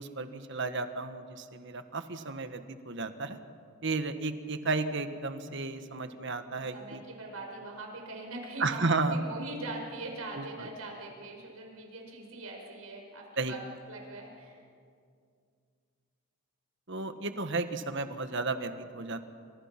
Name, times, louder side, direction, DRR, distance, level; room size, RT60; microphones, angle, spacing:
voice 1, 0.0-3.4 3.8-7.0 8.6-9.2 10.3-10.7 13.4-13.5 16.9-19.2, right 3 dB, 55° right, 9 dB, 1.5 m, -33 dB
voice 2, 6.6-13.6 13.9-14.6, right 2 dB, 80° right, 1 dB, 6.0 m, -42 dB
29.0 x 26.0 x 6.0 m, 2.2 s
head